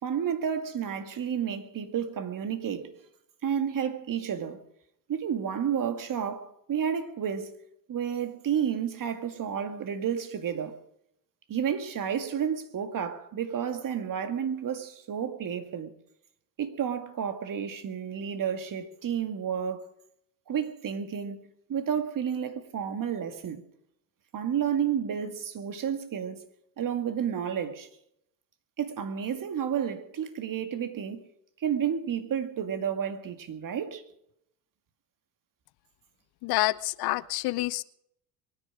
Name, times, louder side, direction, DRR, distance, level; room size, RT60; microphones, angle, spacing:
voice 1, 0.0-2.9 3.4-4.7 5.1-7.5 7.9-10.8 11.5-15.9 16.6-19.9 20.5-23.6 24.3-26.5 26.8-27.9 28.8-31.3 31.6-34.0, right 8 dB, 40° right, 2.0 m, -31 dB
voice 2, 36.4-37.8, left 19 dB, 50° left, 0.6 m, -28 dB
23.5 x 9.8 x 5.1 m
hypercardioid pair, 65°, 49 cm